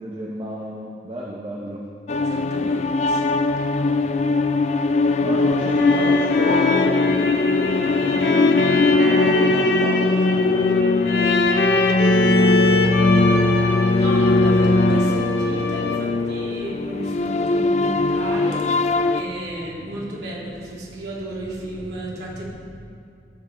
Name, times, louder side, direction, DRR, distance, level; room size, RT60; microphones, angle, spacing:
voice 1, 0.0-1.8 2.6-2.8 5.2-10.8 11.1-13.2, equal, 30° right, -3 dB, 1.0 m, -33 dB
sound 1, 2.1-19.2, left 2 dB, 40° left, 0.4 m, -20 dB
voice 2, 2.2-4.1 5.0-5.2 13.7-22.5, right 1 dB, 70° right, -5 dB, 3.3 m, -33 dB
sound 2, 5.4-16.3, left 3 dB, 70° left, 0.9 m, -24 dB
16.0 x 8.4 x 4.4 m, 2.4 s
head